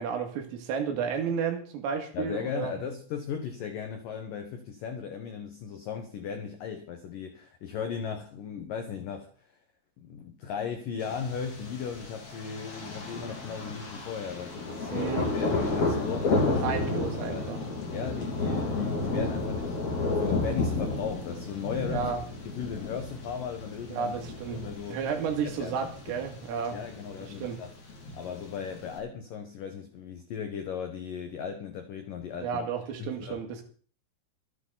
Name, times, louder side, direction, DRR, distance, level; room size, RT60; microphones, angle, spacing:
voice 1, 0.0-2.7 14.9-15.3 16.6-17.6 21.9-22.2 23.9-24.6 24.9-26.8 27.4-27.6 32.4-33.6, right 6 dB, 80° right, 4 dB, 4.8 m, -32 dB
voice 2, 2.1-9.5 10.0-16.8 17.2-17.5 17.9-19.8 20.1-22.1 22.4-24.2 24.5-25.0 25.4-26.3 26.7-27.7 28.1-32.6 33.0-33.4, left 7 dB, 90° left, 6 dB, 1.9 m, -37 dB
Thunder, 11.0-29.0, left 3 dB, 35° left, 4.9 m, -32 dB
25.5 x 8.8 x 4.0 m, 0.42 s
omnidirectional pair, 5.8 m